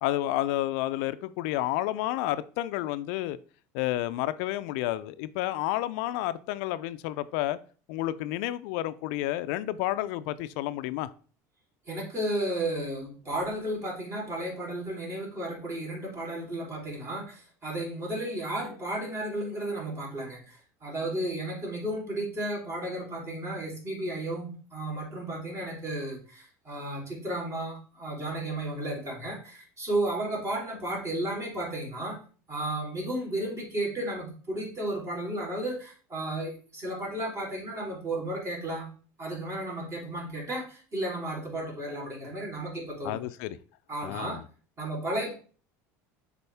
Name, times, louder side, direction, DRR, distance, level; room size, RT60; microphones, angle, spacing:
voice 1, 0.0-3.4 3.7-7.6 7.9-11.1 43.0-43.6 44.0-44.4, left 15 dB, 70° left, 0.4 m, -30 dB
voice 2, 11.9-32.2 32.5-38.9 39.2-43.2 43.9-44.4 44.8-45.3, right 1 dB, 35° right, 3.5 m, -33 dB
6.9 x 4.3 x 3.4 m
supercardioid pair, 90°, 8 cm